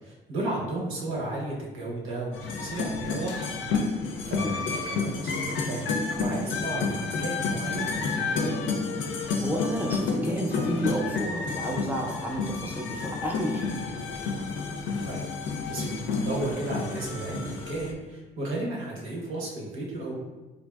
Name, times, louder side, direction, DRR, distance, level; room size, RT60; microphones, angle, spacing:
voice 1, 0.0-3.5 4.0-8.6 15.1-15.2 15.7-20.1, right 2 dB, 85° right, -3 dB, 0.9 m, -34 dB
sound 1, 2.3-17.9, left 4 dB, 75° left, 0.4 m, -30 dB
voice 2, 9.4-13.7, equal, 10° right, -1 dB, 0.5 m, -31 dB
3.4 x 2.5 x 2.3 m, 1.2 s
cardioid pair, 90°, 20 cm